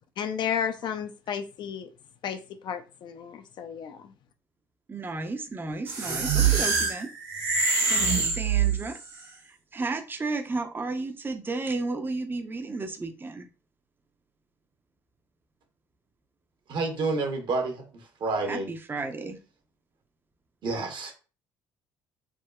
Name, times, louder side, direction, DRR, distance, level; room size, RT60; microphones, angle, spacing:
voice 1, 0.2-1.9 2.2-2.4 2.6-4.0, left 8 dB, 50° left, 9 dB, 0.4 m, -32 dB
voice 2, 4.9-7.1 7.9-9.0 9.4-13.5 18.5-19.4, right 3 dB, 20° right, 7 dB, 0.5 m, -33 dB
sound 1, 5.9-9.1, right 5 dB, 75° right, 1.2 m, -24 dB
voice 3, 16.7-17.8 18.2-18.7 20.6-21.1, right 3 dB, 50° right, 4 dB, 0.9 m, -28 dB
3.5 x 2.1 x 2.2 m, 0.34 s
hypercardioid pair, 65°, 10 cm